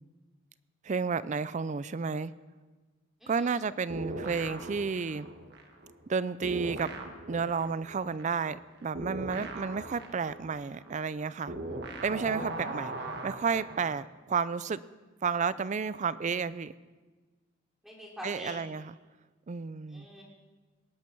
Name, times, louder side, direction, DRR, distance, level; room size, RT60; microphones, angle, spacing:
voice 1, 0.8-2.3 3.3-5.3 6.1-6.9 7.3-11.5 12.0-12.9 13.2-14.8 15.2-16.7 18.2-18.9 19.5-20.1, right 5 dB, 35° right, 17 dB, 0.4 m, -31 dB
voice 2, 3.2-3.6 17.8-18.5 19.9-20.2, equal, ahead, -3 dB, 3.1 m, -44 dB
sound 1, 3.9-6.1 6.4-14.0, right 2 dB, 55° right, 1.5 m, -40 dB
19.0 x 11.5 x 4.6 m, 1.3 s
head